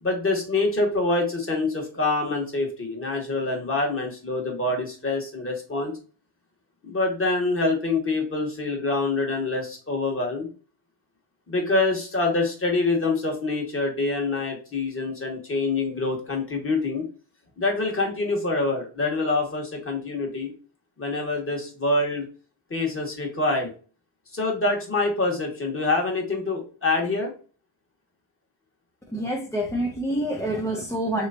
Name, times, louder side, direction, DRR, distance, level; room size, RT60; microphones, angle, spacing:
voice 1, 0.0-5.9 6.8-10.5 11.5-17.0 17.6-20.5 21.0-22.2 22.7-23.7 24.3-27.3, left 3 dB, 25° left, 1.4 m, -25 dB
voice 2, 29.1-31.3, right 1 dB, 5° left, 0.5 m, -27 dB
3.2 x 3.1 x 2.5 m
cardioid pair, 115°, 48 cm